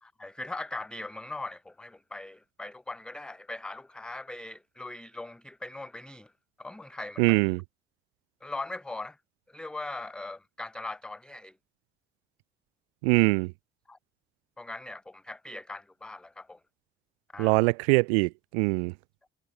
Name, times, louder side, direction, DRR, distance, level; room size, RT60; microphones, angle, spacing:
voice 1, 0.0-6.3 6.6-7.3 8.4-9.2 9.5-11.5 13.9-14.0 14.6-16.6 17.3-17.6, left 2 dB, 5° left, 0.4 m, -40 dB
voice 2, 7.2-7.6 13.0-13.5 17.4-18.9, right 31 dB, 70° right, 0.5 m, -23 dB
figure-of-eight pair, 40°, 33 cm